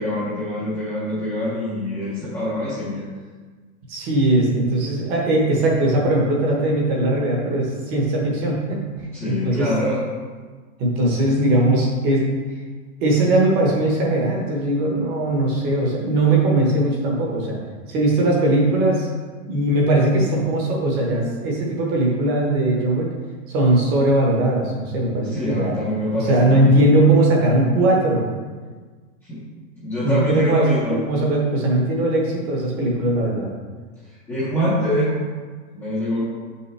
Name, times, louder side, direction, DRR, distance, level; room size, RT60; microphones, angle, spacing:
voice 1, 0.0-3.1 9.1-10.0 25.3-26.7 29.2-29.4 29.8-31.0 34.0-35.2 35.7-36.2, equal, 5° left, -11 dB, 0.6 m, -24 dB
voice 2, 3.9-8.8 9.2-9.7 10.8-12.2 13.0-17.6 17.9-19.1 19.5-23.1 23.5-25.8 26.3-28.3 30.0-30.6 30.9-33.5, right 1 dB, 25° right, -1 dB, 0.9 m, -19 dB
6.8 x 5.6 x 3.2 m, 1.4 s
supercardioid pair, 165°, 41 cm